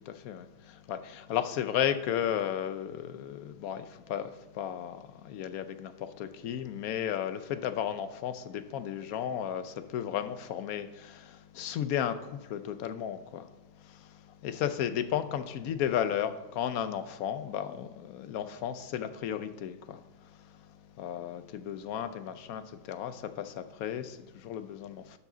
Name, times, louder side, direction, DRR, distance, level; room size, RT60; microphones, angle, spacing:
voice 1, 0.1-13.5 13.8-25.2, left 10 dB, 85° left, 1.1 m, -34 dB
12.0 x 4.9 x 3.9 m
omnidirectional pair, 1.5 m